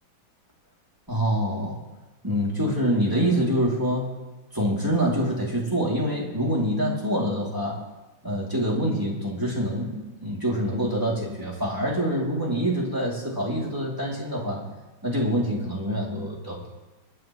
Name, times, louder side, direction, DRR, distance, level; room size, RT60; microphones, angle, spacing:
voice 1, 1.1-1.8 2.2-4.2 4.5-7.8 8.2-14.6 15.0-16.7, equal, 10° right, -4 dB, 2.4 m, -26 dB
26.5 x 9.7 x 3.1 m, 1.2 s
omnidirectional pair, 2.3 m